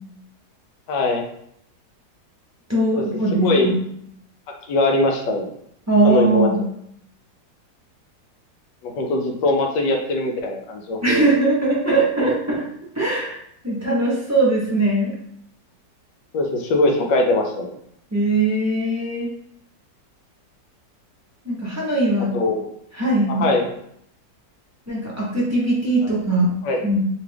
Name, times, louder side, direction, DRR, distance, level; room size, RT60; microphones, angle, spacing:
voice 1, 0.9-1.2 2.9-3.0 3.3-3.7 4.7-5.5 6.0-6.5 8.8-11.2 16.3-17.7 22.3-22.6 23.3-23.7 26.6-26.8, left 2 dB, 75° left, 2 dB, 1.4 m, -21 dB
voice 2, 2.7-3.8 5.9-6.6 11.0-12.6 12.9-13.4 13.6-15.1 18.1-19.3 21.4-22.3 22.9-23.4 24.9-26.5 26.8-27.0, right 2 dB, 15° right, -6 dB, 0.5 m, -20 dB
4.8 x 2.4 x 3.4 m, 0.71 s
omnidirectional pair, 2.0 m